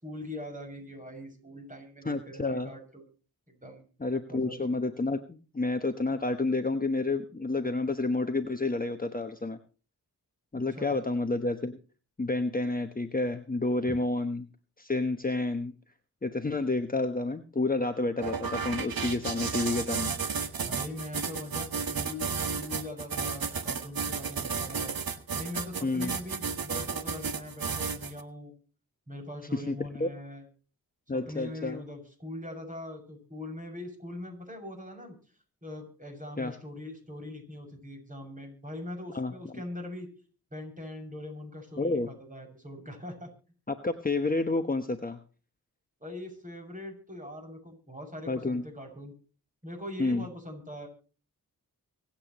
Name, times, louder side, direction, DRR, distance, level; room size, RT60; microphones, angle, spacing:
voice 1, 0.0-3.0 3.5-3.9 4.3-4.6 10.7-11.0 13.9-14.0 20.6-22.3 22.6-24.9 25.3-28.5 29.1-30.4 31.1-35.1 35.6-40.1 40.5-43.3 46.0-49.1 49.6-50.9, left 1 dB, 20° right, 3 dB, 6.7 m, -41 dB
voice 2, 2.0-2.7 4.0-9.6 10.5-11.8 12.2-14.5 14.8-15.7 16.2-20.1 25.8-26.1 29.5-30.1 31.1-31.8 36.4-36.5 39.1-39.3 41.8-42.1 43.7-45.2 48.3-48.6 50.0-50.2, left 2 dB, 25° left, 7 dB, 1.2 m, -30 dB
sound 1, 18.2-28.2, right 5 dB, 65° right, 1.4 m, -33 dB
24.5 x 8.7 x 3.1 m, 0.37 s
cardioid pair, 55°, 38 cm